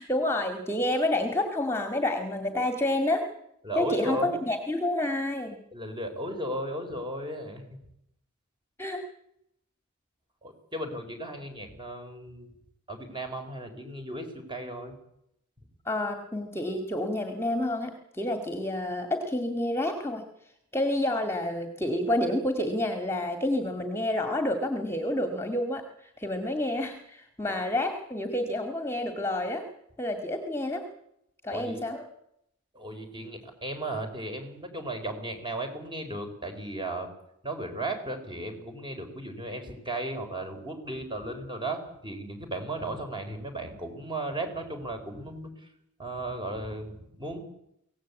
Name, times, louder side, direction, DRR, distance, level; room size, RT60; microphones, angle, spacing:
voice 1, 0.0-3.3 3.8-5.6 8.8-9.0 15.9-20.2 20.7-29.7 30.0-30.9 31.4-32.1, left 1 dB, 10° left, 6 dB, 2.0 m, -29 dB
voice 2, 3.6-4.4 4.8-4.9 5.7-7.8 10.4-12.5 12.9-14.9 31.5-31.8 32.7-37.1 37.4-45.7 46.0-47.4, right 1 dB, 20° right, 5 dB, 4.6 m, -35 dB
24.0 x 17.5 x 8.3 m, 0.77 s
head